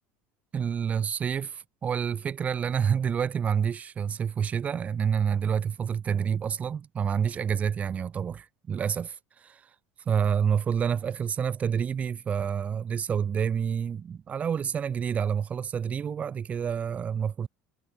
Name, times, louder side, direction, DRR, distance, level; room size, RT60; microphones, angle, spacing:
voice 1, 0.5-9.6 10.1-17.5, right 7 dB, 25° right, 1.9 m, -28 dB
cardioid pair, 155°, 6 cm